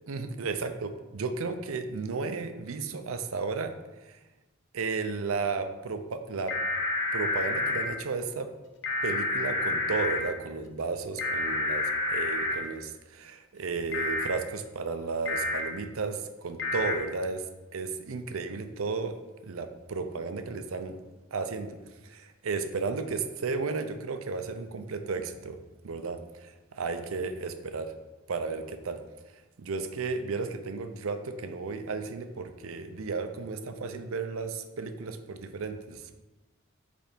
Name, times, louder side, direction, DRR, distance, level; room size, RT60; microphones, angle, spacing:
voice 1, 0.1-3.7 4.1-4.2 4.7-6.5 7.1-8.5 9.0-17.4 17.7-19.2 19.4-21.0 21.3-21.8 22.0-25.6 25.8-27.9 28.3-29.0 29.6-36.0, right 4 dB, 80° right, 9 dB, 0.6 m, -34 dB
sound 1, 6.5-7.9 8.8-10.2 11.2-12.6 13.9-14.3 15.3-15.6 16.6-16.9, left 2 dB, 60° left, 0.9 m, -29 dB
5.1 x 4.4 x 5.1 m, 1.1 s
head